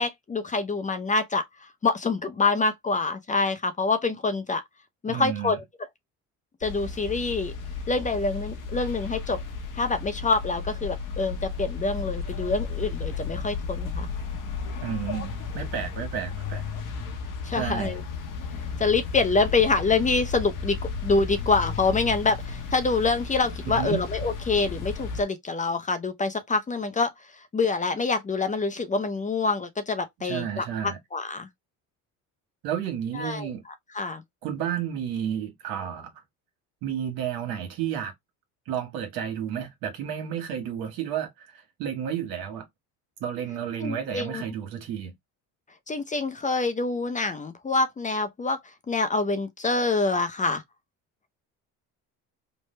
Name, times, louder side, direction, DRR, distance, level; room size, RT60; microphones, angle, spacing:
voice 1, 0.0-4.6 5.0-5.6 6.6-7.5 7.9-9.4 9.7-14.1 17.4-18.0 18.8-27.1 27.5-31.5 33.1-33.5 33.9-34.2 43.8-44.4 45.9-48.6 48.9-50.6, left 3 dB, 20° left, 0.5 m, -26 dB
voice 2, 5.1-5.6 14.8-16.7 17.5-18.0 23.6-24.0 30.2-31.0 32.6-33.6 34.4-36.2 36.8-38.1 38.7-42.7 43.2-45.1, right 9 dB, 75° right, 1.3 m, -31 dB
sound 1, 6.6-25.2, left 5 dB, 60° left, 0.9 m, -34 dB
3.3 x 2.1 x 3.1 m
cardioid pair, 95°, 36 cm